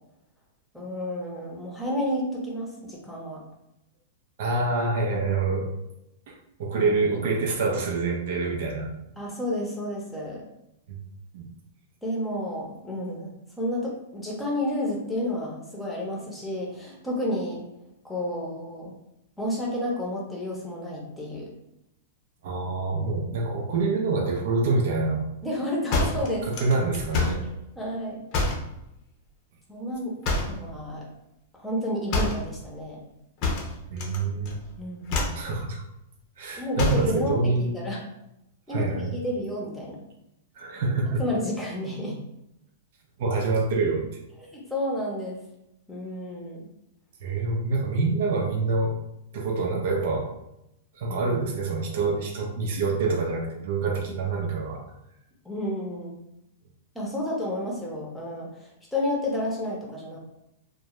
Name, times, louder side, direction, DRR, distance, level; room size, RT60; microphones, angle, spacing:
voice 1, 0.7-3.4 6.7-6.9 9.2-10.4 12.0-17.6 18.0-18.9 19.4-21.5 25.4-26.5 27.4-28.2 29.7-30.2 30.4-31.1 31.5-33.0 34.8-35.4 36.6-38.0 38.7-40.0 41.2-42.2 44.4-45.4 45.9-46.6 51.1-51.3 55.4-56.2 56.9-60.2, left 1 dB, 5° left, -3 dB, 0.7 m, -31 dB
voice 2, 4.4-5.7 6.3-8.9 10.9-11.0 11.3-11.5 22.4-25.3 26.0-26.2 26.4-27.4 33.9-34.6 35.3-35.8 36.4-37.8 38.7-39.2 40.6-41.2 43.2-44.1 47.2-49.0 49.3-50.3 51.0-54.8, right 3 dB, 65° right, 2 dB, 0.5 m, -26 dB
sound 1, 25.9-27.5 28.3-28.7 30.2-30.7 32.1-32.5 33.4-34.2 34.4-34.7 35.1-35.5 36.8-37.1, left 2 dB, 45° left, 0.6 m, -27 dB
2.2 x 2.1 x 2.9 m, 0.84 s
hypercardioid pair, 125°, 0 cm